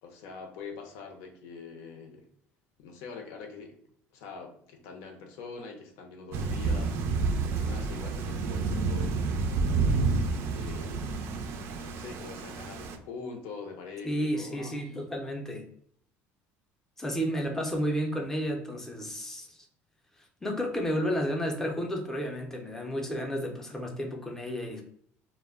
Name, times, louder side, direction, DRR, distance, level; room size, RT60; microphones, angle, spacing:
voice 1, 0.0-2.3 2.8-3.8 4.1-6.9 7.5-9.4 10.5-11.2 11.8-14.8, left 4 dB, 85° left, 3 dB, 0.6 m, -44 dB
Thunder / Rain, 6.3-13.0, right 4 dB, 55° right, 0.4 m, -29 dB
voice 2, 14.0-15.7 17.0-19.7 20.4-24.8, equal, 10° left, 2 dB, 0.5 m, -32 dB
2.2 x 2.1 x 3.5 m, 0.64 s
cardioid pair, 140°, 5 cm